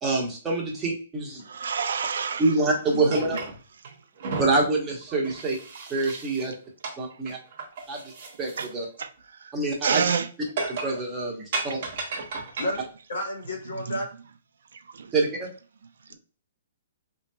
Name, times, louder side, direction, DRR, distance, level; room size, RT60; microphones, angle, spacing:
voice 1, 0.0-1.4 2.4-3.4 4.4-5.6 5.9-6.5 7.0-7.4 7.9-8.1 8.4-8.9 9.5-10.0 10.8-11.8 15.1-15.5, right 3 dB, 10° right, 0.9 m, -26 dB
voice 2, 1.4-2.5 2.9-3.1 3.9-4.0 8.6-8.7 9.0-9.5 9.8-10.3 13.8-14.0 14.7-15.1, right 6 dB, 80° right, 0.5 m, -29 dB
sound 1, 3.1-3.9 4.2-6.5 6.8-7.0 7.3-8.7 9.0-9.1 10.6-11.0 11.5-12.8, right 3 dB, 40° right, 1.0 m, -34 dB
voice 3, 13.1-14.1 16.1-16.2, left 1 dB, 85° left, 1.6 m, -31 dB
3.7 x 2.8 x 2.2 m
hypercardioid pair, 165°, 0 cm